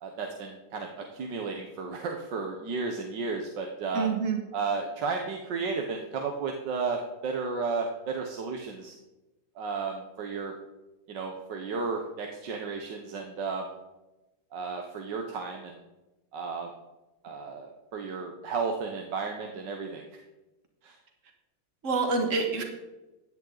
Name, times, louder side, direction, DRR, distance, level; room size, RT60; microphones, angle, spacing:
voice 1, 0.0-4.1 4.5-8.9 9.6-10.5 11.1-13.7 14.5-15.8 16.3-16.7 17.2-20.0 20.8-20.9, right 4 dB, 65° right, 3 dB, 1.7 m, -33 dB
voice 2, 3.9-4.4 21.8-22.6, right 4 dB, 40° right, 4 dB, 2.0 m, -27 dB
15.5 x 10.5 x 4.0 m, 1.1 s
omnidirectional pair, 2.1 m